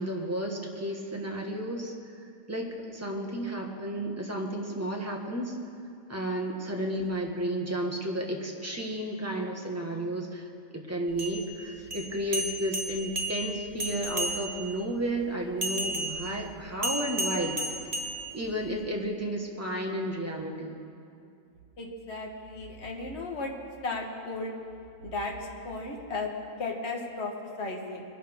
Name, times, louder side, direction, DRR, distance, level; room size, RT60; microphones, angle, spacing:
voice 1, 0.0-1.9 2.5-5.5 6.1-10.5 10.7-17.6 18.3-20.8, right 1 dB, 10° right, 0 dB, 1.4 m, -32 dB
sound 1, 11.1-14.8 15.6-18.8, right 1 dB, 30° right, 1.0 m, -34 dB
voice 2, 21.8-23.5 23.8-24.5 25.0-25.4 25.6-26.3 26.6-28.0, left 3 dB, 50° left, 0 dB, 1.7 m, -35 dB
21.5 x 12.0 x 3.6 m, 2.5 s
omnidirectional pair, 1.4 m